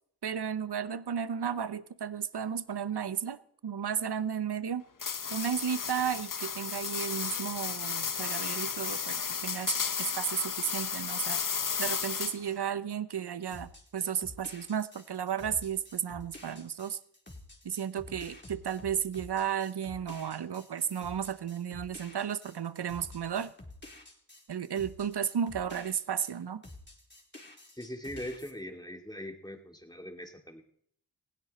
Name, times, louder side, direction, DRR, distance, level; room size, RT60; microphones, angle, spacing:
voice 1, 0.2-4.8 5.3-9.7 10.0-11.4 11.8-17.0 17.6-23.5 24.5-26.6, right 8 dB, 70° right, 15 dB, 0.9 m, -33 dB
sound 1, 5.0-12.6, left 6 dB, 50° left, 0.9 m, -33 dB
sound 2, 13.5-26.3 26.6-28.5, left 2 dB, 25° left, 3.7 m, -50 dB
voice 2, 27.8-30.6, left 1 dB, 10° left, 4 dB, 2.7 m, -41 dB
19.5 x 16.0 x 4.3 m, 0.66 s
cardioid pair, 40°, 41 cm